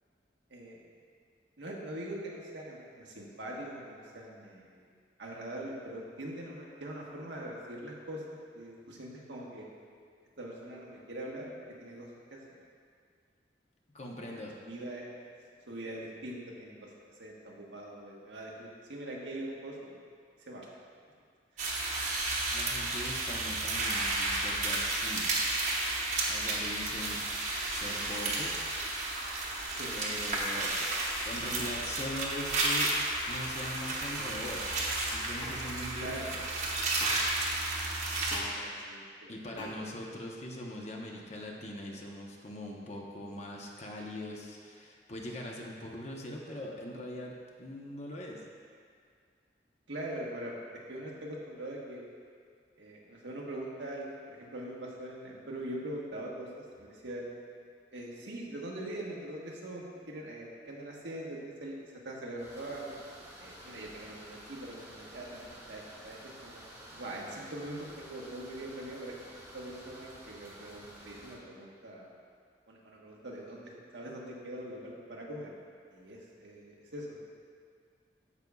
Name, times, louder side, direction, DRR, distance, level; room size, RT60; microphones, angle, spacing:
voice 1, 1.6-4.9 5.2-8.2 8.5-9.7 10.4-11.5 11.8-12.4 14.2-14.4 14.7-15.1 15.7-16.9 17.2-20.0 20.4-20.7 29.7-30.0 30.5-30.8 36.0-36.3 38.5-39.6 49.9-50.5 50.9-52.0 52.8-57.3 57.9-61.7 62.0-63.0 63.4-66.6 66.9-69.2 69.5-72.2 72.7-75.5 75.9-77.2, right 1 dB, 90° right, -3 dB, 1.3 m, -42 dB
voice 2, 13.9-14.5 22.5-25.3 26.3-27.2 27.7-28.5 29.9-30.7 31.2-33.0 33.3-36.6 39.3-48.4, left 1 dB, 40° left, -1 dB, 0.9 m, -41 dB
sound 1, 21.6-38.4, right 2 dB, 40° right, 1.0 m, -32 dB
sound 2, 34.2-34.3 35.4-35.5 37.0-37.2 38.3-38.5 39.6-39.7, left 2 dB, 90° left, 1.3 m, -42 dB
sound 3, 62.4-71.4, right 1 dB, 15° right, 1.2 m, -51 dB
14.0 x 5.3 x 2.3 m, 2.1 s
head